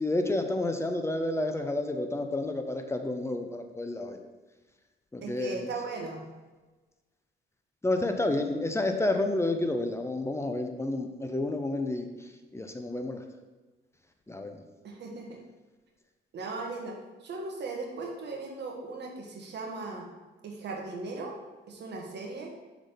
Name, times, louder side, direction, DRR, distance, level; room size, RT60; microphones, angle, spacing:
voice 1, 0.0-4.2 5.1-5.6 7.8-12.1 12.5-13.2 14.3-14.5, left 2 dB, 15° left, 6 dB, 0.7 m, -30 dB
voice 2, 5.2-6.2 14.8-15.4 16.3-16.9 17.2-20.0 20.4-21.3 21.7-22.5, right 3 dB, 60° right, 0 dB, 1.5 m, -37 dB
6.2 x 3.9 x 5.1 m, 1.2 s
cardioid pair, 90°, 20 cm